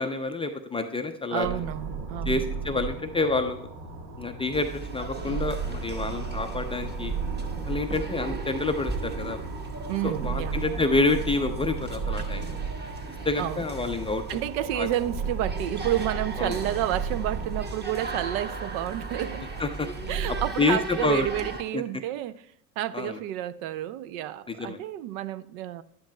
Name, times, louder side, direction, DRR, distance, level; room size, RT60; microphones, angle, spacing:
voice 1, 0.0-1.6 2.3-3.7 4.2-7.1 7.7-9.4 10.0-12.6 13.3-14.2 14.7-14.9 16.4-16.6 19.6-19.9 20.6-21.3 21.7-21.8 22.9-23.2 24.5-24.8, left 3 dB, 10° left, 0.4 m, -28 dB
voice 2, 1.3-2.4 9.9-10.6 13.4-13.6 14.3-19.5 20.1-22.4 22.8-25.8, right 12 dB, 60° right, 0.6 m, -30 dB
sound 1, 1.4-20.5, right 5 dB, 75° right, 1.6 m, -35 dB
sound 2, 4.5-21.6, right 3 dB, 20° right, 1.2 m, -37 dB
11.5 x 10.0 x 2.2 m
hypercardioid pair, 80°, 49 cm